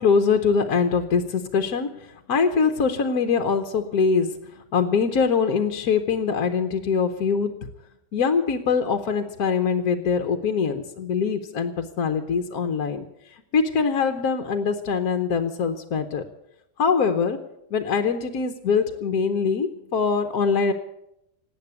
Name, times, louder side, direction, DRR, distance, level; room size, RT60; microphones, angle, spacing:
voice 1, 0.0-7.7 8.1-13.1 13.5-16.2 16.8-20.7, left 5 dB, 65° left, 5 dB, 1.4 m, -23 dB
19.0 x 8.7 x 8.3 m, 0.82 s
omnidirectional pair, 1.8 m